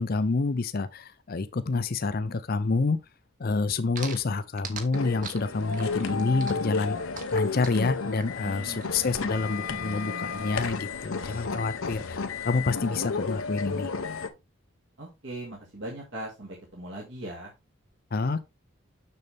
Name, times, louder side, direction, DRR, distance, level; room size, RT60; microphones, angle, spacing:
voice 1, 0.0-3.0 3.4-7.0 7.3-13.9 18.1-18.4, left 3 dB, 45° left, 0.5 m, -28 dB
sound 1, 3.9-8.9, right 5 dB, 40° right, 1.2 m, -40 dB
sound 2, 4.9-14.3, left 4 dB, 85° left, 0.9 m, -32 dB
voice 2, 8.4-8.9 15.0-17.5, right 1 dB, 65° right, 2.1 m, -39 dB
6.7 x 6.5 x 3.4 m
head